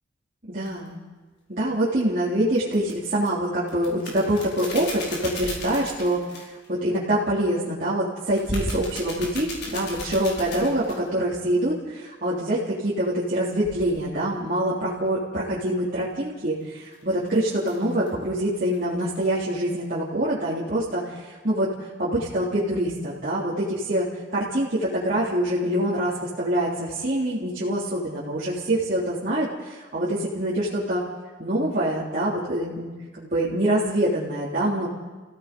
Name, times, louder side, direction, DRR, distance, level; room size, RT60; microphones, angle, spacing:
voice 1, 0.5-1.0 1.5-31.0 31.4-32.9 33.2-34.9, right 1 dB, 45° right, -8 dB, 3.5 m, -25 dB
sound 1, 0.7-0.8 2.6-3.3 3.7-6.7 8.4-11.1 13.6-14.1 16.6-18.2 18.7-18.8 19.1-19.3, left 1 dB, 60° left, 4.9 m, -35 dB
29.5 x 16.5 x 5.4 m, 1.3 s
head